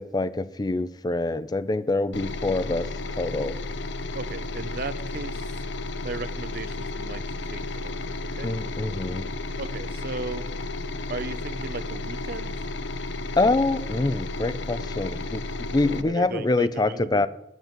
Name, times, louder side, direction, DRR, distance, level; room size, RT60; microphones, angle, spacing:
voice 1, 0.0-3.6 8.4-9.3 13.4-15.4 15.7-17.3, left 2 dB, 20° left, 14 dB, 0.4 m, -25 dB
sound 1, 2.1-16.0, left 2 dB, 75° left, 0.7 m, -33 dB
voice 2, 4.1-5.5 6.0-7.2 7.5-8.5 9.6-10.5 11.1-12.5 16.0-17.2, right 3 dB, 55° right, 13 dB, 0.7 m, -36 dB
9.4 x 8.1 x 8.8 m, 0.83 s
head